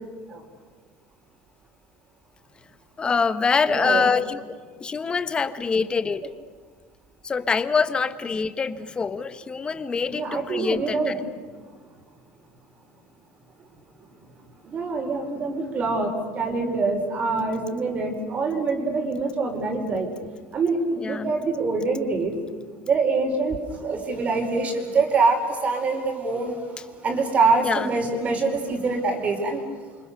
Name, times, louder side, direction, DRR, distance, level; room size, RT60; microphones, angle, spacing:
voice 1, 3.0-6.3 7.2-11.2 21.0-21.3 27.6-27.9, left 5 dB, 20° left, 12 dB, 1.3 m, -25 dB
voice 2, 3.7-4.1 10.1-11.2 14.7-20.1 20.5-22.3 22.9-23.6 23.8-26.6 27.0-29.6, right 3 dB, 30° right, 4 dB, 5.1 m, -24 dB
29.5 x 26.0 x 6.8 m, 1.5 s
cardioid pair, 135°, 5 cm